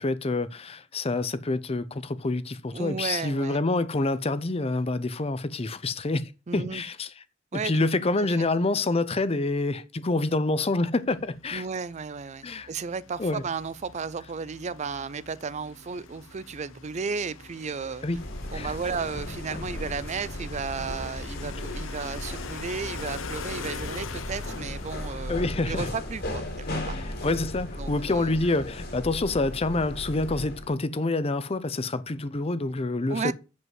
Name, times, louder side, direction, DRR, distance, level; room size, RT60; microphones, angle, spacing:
voice 1, 0.0-7.1 7.5-11.6 12.4-12.7 13.2-13.4 18.0-18.2 18.5-18.7 25.3-25.9 27.0-33.3, left 2 dB, 30° left, 0.6 m, -27 dB
voice 2, 2.7-3.6 6.5-6.8 7.5-7.9 8.2-8.5 11.5-18.1 18.5-25.4 25.7-27.0 27.8-28.3 33.1-33.3, right 5 dB, 35° right, 0.4 m, -34 dB
sound 1, 11.2-27.3, left 4 dB, 80° left, 0.8 m, -43 dB
sound 2, 18.1-30.7, left 1 dB, 50° left, 2.5 m, -36 dB
7.8 x 5.4 x 7.5 m
head